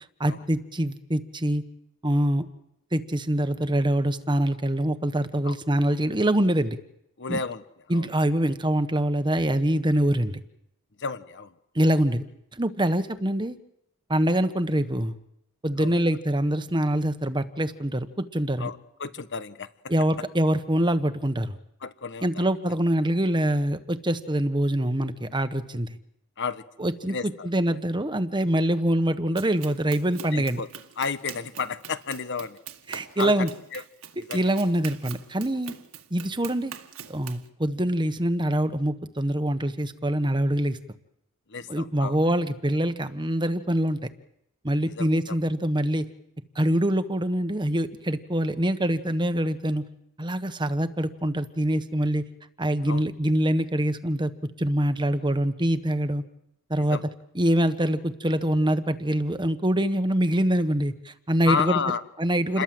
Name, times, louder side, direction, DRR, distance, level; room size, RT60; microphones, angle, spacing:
voice 1, 0.2-1.6 2.0-2.4 2.9-6.8 7.3-7.4 7.9-10.4 11.7-12.2 12.5-13.6 14.1-15.1 15.6-18.7 19.9-21.6 22.2-26.0 26.8-30.6 32.9-33.5 34.3-35.7 36.1-36.7 37.1-40.8 41.7-44.0 44.6-46.0 46.5-49.8 50.2-52.2 52.6-54.3 54.6-56.2 56.7-57.0 57.3-61.8 62.2-62.6, right 1 dB, 20° right, 10 dB, 1.3 m, -24 dB
voice 2, 7.2-7.6 7.9-8.1 11.0-11.5 15.8-15.9 18.6-19.7 21.8-22.4 26.4-27.5 30.3-30.7 31.0-32.6 33.2-33.3 33.7-33.8 34.3-34.5 41.5-42.2 44.8-45.3 52.9-53.0 56.9-57.0 61.4-62.0 62.5-62.6, left 5 dB, 55° left, 12 dB, 1.3 m, -31 dB
Run, 29.4-37.5, right 8 dB, 70° right, 1.9 m, -43 dB
28.5 x 21.5 x 7.9 m, 0.79 s
head